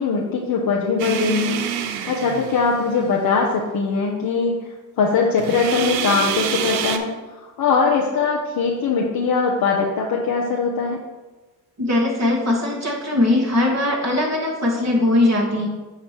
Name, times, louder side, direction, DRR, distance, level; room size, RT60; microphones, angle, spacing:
voice 1, 0.0-1.6 2.1-4.5 5.0-7.1 7.4-11.0, left 5 dB, 50° left, -1 dB, 1.1 m, -21 dB
sound 1, 1.0-3.0 5.4-7.0, right 9 dB, 80° right, 0.7 m, -26 dB
voice 2, 11.8-15.7, left 2 dB, 35° right, -1 dB, 2.4 m, -20 dB
8.1 x 3.0 x 6.2 m, 1.2 s
hypercardioid pair, 55°, 46 cm